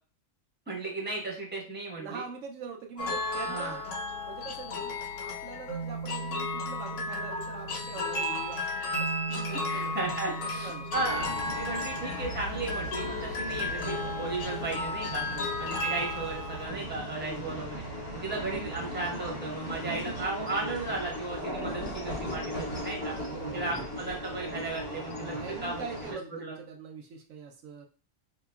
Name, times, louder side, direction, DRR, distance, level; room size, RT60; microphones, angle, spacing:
voice 1, 0.7-2.2 3.3-3.8 9.3-15.2 15.6-17.7 18.1-23.1 23.5-25.4 25.6-25.8 26.4-26.5, right 2 dB, 10° right, -3 dB, 1.1 m, -35 dB
voice 2, 2.0-3.8 4.2-9.9 10.4-10.9 15.3-15.7 17.2-17.6 19.8-20.0 22.4-22.9 23.3-23.9 25.2-27.9, right 5 dB, 75° right, 2 dB, 0.9 m, -43 dB
sound 1, 3.0-16.7, left 1 dB, 65° left, 1.1 m, -34 dB
sound 2, 10.9-26.1, equal, 45° left, 1.2 m, -38 dB
4.8 x 2.9 x 2.3 m, 0.38 s
omnidirectional pair, 1.4 m